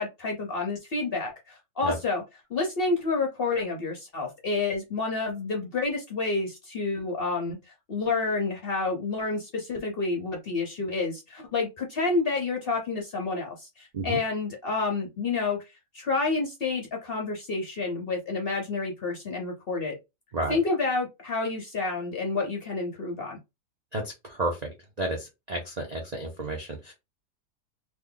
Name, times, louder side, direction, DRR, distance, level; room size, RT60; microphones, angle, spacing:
voice 1, 0.0-2.2 2.5-7.6 7.9-15.6 15.9-19.9 20.5-23.4, left 3 dB, 55° left, 0.6 m, -29 dB
voice 2, 23.9-24.6 25.0-26.9, right 2 dB, 85° right, 0.3 m, -31 dB
3.0 x 2.2 x 3.7 m
omnidirectional pair, 1.8 m